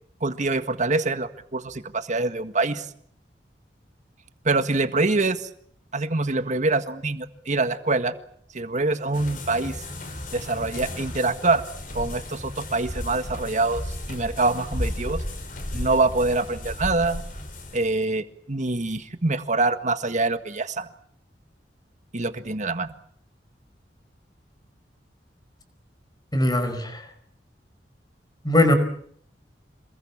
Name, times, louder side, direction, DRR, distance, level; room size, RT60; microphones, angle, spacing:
voice 1, 0.2-2.9 4.5-5.5 5.9-8.2 8.5-9.8 10.3-11.6 11.9-15.2 15.7-17.2 17.7-20.9 22.1-22.9, right 3 dB, 45° right, 10 dB, 1.7 m, -25 dB
sound 1, 9.1-17.8, left 1 dB, 50° left, 5.8 m, -34 dB
voice 2, 26.3-27.1 28.4-28.8, left 1 dB, 25° left, 8 dB, 5.1 m, -20 dB
27.5 x 21.5 x 7.3 m, 0.63 s
head